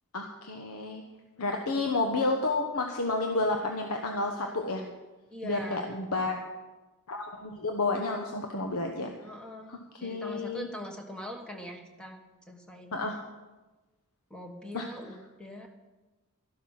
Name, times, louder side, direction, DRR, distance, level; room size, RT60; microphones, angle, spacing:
voice 1, 0.1-1.0 1.4-4.8 5.4-6.4 7.1-9.1 9.7-10.7 12.9-13.2 14.7-14.9, left 2 dB, 80° left, 3 dB, 1.1 m, -30 dB
voice 2, 5.3-6.0 9.2-12.2 12.5-13.0 14.3-15.7, left 1 dB, 5° left, 3 dB, 1.4 m, -42 dB
12.5 x 12.5 x 5.7 m, 1.2 s
head